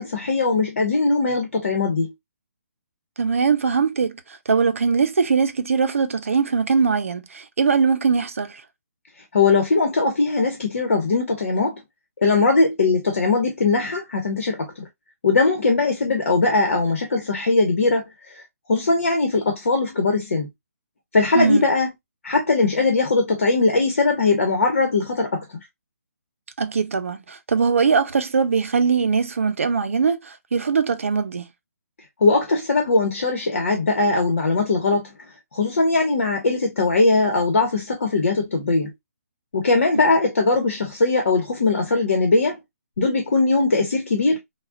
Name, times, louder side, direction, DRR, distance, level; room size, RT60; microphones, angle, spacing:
voice 1, 0.0-2.1 9.3-11.8 12.2-14.6 15.2-18.1 18.7-20.5 21.1-21.9 22.2-25.4 32.2-35.1 35.5-38.9 39.5-42.6 43.0-44.4, left 3 dB, 55° left, 1.2 m, -20 dB
voice 2, 3.2-4.1 4.5-8.6 21.3-21.7 26.6-31.5, right 5 dB, 60° right, 0.7 m, -21 dB
4.1 x 2.4 x 2.3 m
hypercardioid pair, 175°, 8 cm